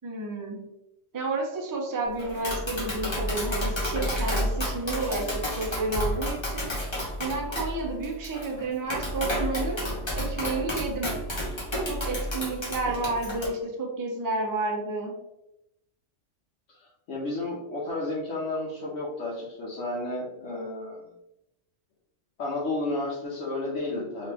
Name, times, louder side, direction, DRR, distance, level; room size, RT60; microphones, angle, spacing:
voice 1, 0.0-0.6 1.1-6.7 7.2-9.8 10.1-11.1 11.9-15.1, right 2 dB, 25° right, 0 dB, 0.4 m, -31 dB
Tap, 2.2-13.5, equal, 25° left, 0.9 m, -30 dB
voice 2, 16.7-21.1 22.4-24.3, left 2 dB, 75° left, -6 dB, 1.1 m, -32 dB
2.9 x 2.5 x 3.3 m, 0.86 s
omnidirectional pair, 1.2 m